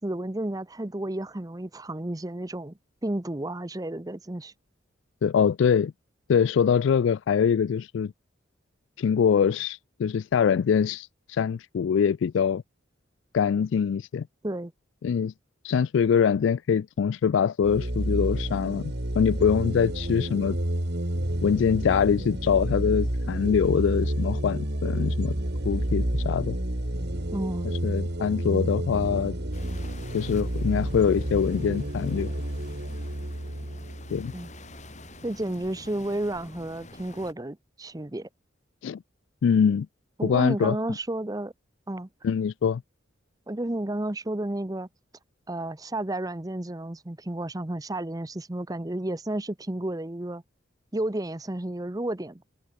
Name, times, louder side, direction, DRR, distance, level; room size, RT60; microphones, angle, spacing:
voice 1, 0.0-2.7 3.0-4.5 14.4-14.7 27.3-27.8 34.3-34.5 35.2-38.3 40.2-41.5 41.9-42.1 43.5-44.9 45.5-50.4 50.9-52.4, right 1 dB, 20° right, 0.8 m, -32 dB
voice 2, 5.2-5.9 6.3-8.1 9.0-12.6 13.3-14.3 15.0-15.3 15.6-20.6 21.4-25.3 25.6-26.6 27.8-29.3 30.1-32.3 34.1-34.3 38.8-39.0 39.4-39.9 40.2-40.8 42.2-42.8, left 7 dB, 70° left, 0.3 m, -24 dB
sound 1, 17.6-35.0, right 1 dB, 55° right, 2.6 m, -30 dB
sound 2, 29.5-37.3, left 2 dB, 35° left, 7.0 m, -47 dB
head